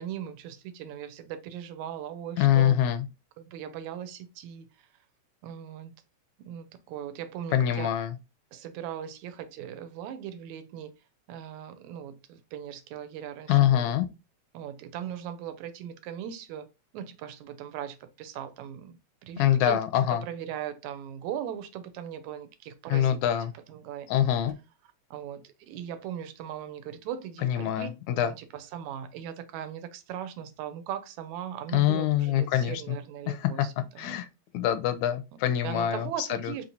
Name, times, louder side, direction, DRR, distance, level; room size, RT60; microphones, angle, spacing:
voice 1, 0.0-2.8 3.4-4.9 5.4-6.0 6.5-7.9 8.5-10.9 11.3-13.9 14.5-16.7 16.9-19.8 20.1-23.2 23.7-24.1 25.1-27.9 28.2-34.2 35.6-36.6, right 10 dB, 85° right, 2.0 m, -39 dB
voice 2, 2.4-3.1 7.5-8.1 13.5-14.1 19.4-20.2 22.9-23.5 24.1-24.5 27.4-28.3 31.7-33.0 33.3-33.5 34.0-34.3 34.5-36.6, left 11 dB, 80° left, 1.8 m, -25 dB
5.1 x 3.0 x 2.7 m
omnidirectional pair, 3.3 m